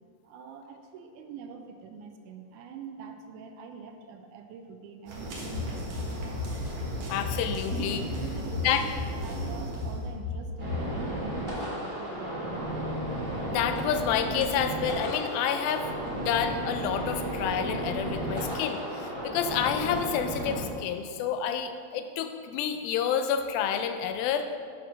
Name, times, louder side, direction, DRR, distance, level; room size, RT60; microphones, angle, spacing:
voice 1, 0.2-6.3 8.1-12.6, right 5 dB, 85° right, 5 dB, 1.8 m, -44 dB
sound 1, 5.1-10.1, right 1 dB, 55° right, 2.3 m, -37 dB
sound 2, 5.5-10.9, left 3 dB, 60° left, 3.2 m, -35 dB
voice 2, 7.1-8.1 8.6-8.8 13.5-24.5, left 8 dB, 80° left, 8 dB, 2.4 m, -29 dB
sound 3, 10.6-20.6, right 1 dB, 15° right, 1.3 m, -33 dB
9.9 x 4.4 x 6.2 m, 2.2 s
omnidirectional pair, 4.2 m